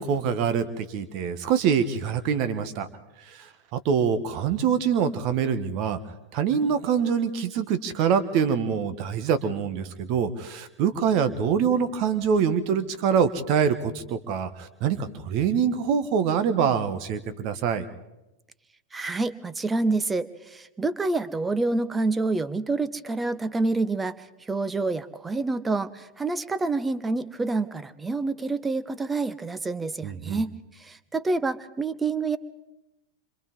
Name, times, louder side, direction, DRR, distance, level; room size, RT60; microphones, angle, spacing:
voice 1, 0.0-2.9 3.2-6.0 6.3-17.9 30.0-30.4, right 7 dB, 40° right, 11 dB, 1.5 m, -25 dB
voice 2, 18.9-32.4, right 3 dB, 10° right, 15 dB, 0.9 m, -27 dB
29.0 x 25.5 x 3.7 m, 0.97 s
figure-of-eight pair, 90°, 0 cm